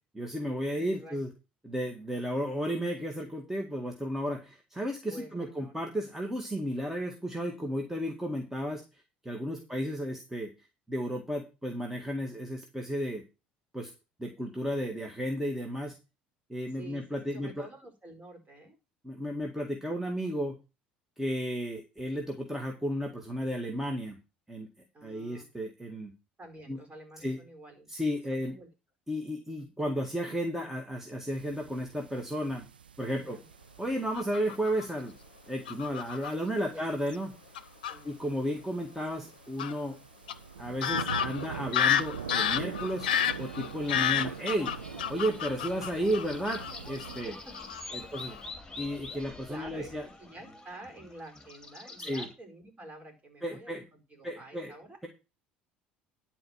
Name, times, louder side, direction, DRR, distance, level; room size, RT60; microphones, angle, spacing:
voice 1, 0.1-1.3 1.6-8.8 9.2-10.5 10.9-13.2 13.7-13.9 14.2-16.0 16.5-17.7 19.0-20.6 21.2-24.2 24.5-24.7 25.0-26.1 26.7-26.8 27.2-27.4 27.9-28.6 29.1-32.6 33.0-33.4 33.8-35.1 35.5-37.3 38.0-40.0 40.6-43.1 43.4-44.7 45.1-47.3 47.9-48.4 48.8-50.1 52.0-52.3 53.4-53.8 54.2-54.7, equal, 5° right, 2 dB, 2.0 m, -33 dB
voice 2, 0.7-1.2 5.0-5.8 9.4-9.7 16.7-18.8 24.9-25.5 26.4-27.9 28.3-28.7 29.5-29.7 33.2-33.4 36.7-36.9 37.9-38.2 47.2-48.1 49.1-49.9 50.2-55.1, right 1 dB, 30° right, 4 dB, 4.8 m, -49 dB
sound 1, 31.3-47.2, right 7 dB, 90° right, 0.4 m, -44 dB
Fowl / Bird vocalization bird call bird song, 34.1-34.8 35.7-36.3 37.1-37.2 37.5-37.9 39.6-39.7 40.3-40.4 40.8-46.7 47.0-47.2 47.5-47.8 48.1-48.4, left 9 dB, 80° left, 0.7 m, -30 dB
sound 2, 42.7-52.3, left 3 dB, 10° left, 2.8 m, -46 dB
11.0 x 4.5 x 7.2 m, 0.29 s
hypercardioid pair, 65°, 5 cm